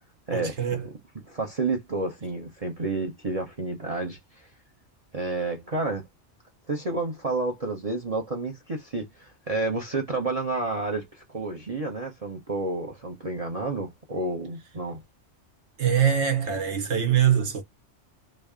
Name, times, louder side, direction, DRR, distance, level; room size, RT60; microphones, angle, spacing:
voice 1, 0.3-0.9 15.8-17.6, right 9 dB, 70° right, 1.3 m, -23 dB
voice 2, 1.1-4.5 5.1-6.1 6.7-15.0, right 3 dB, 35° right, 0.9 m, -30 dB
3.3 x 2.7 x 3.5 m
omnidirectional pair, 1.2 m